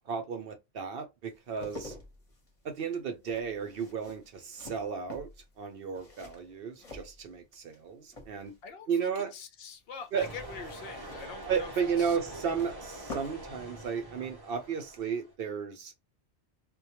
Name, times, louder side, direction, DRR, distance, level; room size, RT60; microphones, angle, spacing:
voice 1, 0.1-1.9 2.6-5.3 5.6-8.5 8.9-9.3 10.1-10.3 11.5-15.9, right 6 dB, 65° right, 0.7 m, -33 dB
sound 1, 1.3-7.8 8.1-8.7 10.0-13.5 13.8-13.9, left 2 dB, 35° left, 0.9 m, -48 dB
voice 2, 8.6-11.7 12.0-12.2, left 6 dB, 65° left, 0.7 m, -44 dB
sound 2, 10.2-15.3, right 1 dB, 25° right, 0.6 m, -44 dB
2.2 x 2.2 x 2.8 m
omnidirectional pair, 1.1 m